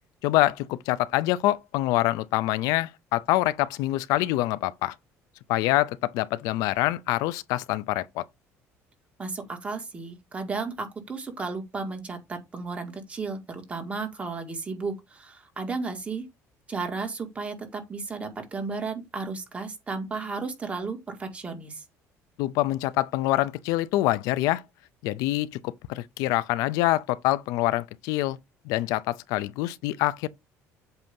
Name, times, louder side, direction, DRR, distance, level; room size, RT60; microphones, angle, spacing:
voice 1, 0.2-5.0 5.5-8.3 22.4-24.6 25.0-28.4 28.7-30.3, left 16 dB, 85° left, 0.5 m, -25 dB
voice 2, 9.2-16.3 16.7-21.8, right 4 dB, 20° right, 1.8 m, -34 dB
8.0 x 2.8 x 5.2 m
cardioid pair, 120°, 6 cm